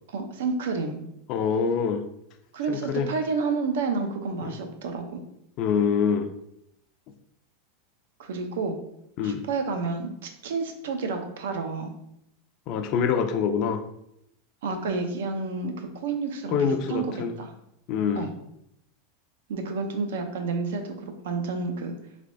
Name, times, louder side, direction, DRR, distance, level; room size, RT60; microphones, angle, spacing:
voice 1, 0.1-1.0 2.5-5.2 8.2-8.8 9.2-11.9 14.6-17.0 17.4-17.5 18.2-18.3 19.5-22.0, right 4 dB, 85° right, 5 dB, 0.5 m, -30 dB
voice 2, 1.3-2.0 2.7-3.1 4.4-4.5 5.6-6.3 9.2-9.4 12.7-13.8 16.5-17.3 17.9-18.3, left 6 dB, 40° left, 8 dB, 0.3 m, -25 dB
3.3 x 3.0 x 2.6 m, 0.78 s
supercardioid pair, 155°, 0 cm